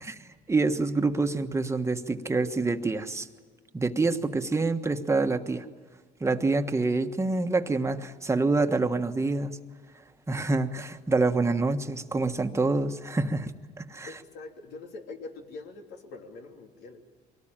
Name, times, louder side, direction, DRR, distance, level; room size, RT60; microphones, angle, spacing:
voice 1, 0.5-3.3 3.7-5.6 6.2-9.6 10.3-14.2, right 3 dB, 15° right, 7 dB, 1.4 m, -26 dB
voice 2, 14.1-17.1, left 3 dB, 80° left, 3 dB, 3.2 m, -43 dB
24.0 x 18.5 x 8.9 m, 1.5 s
cardioid pair, 110°, 17 cm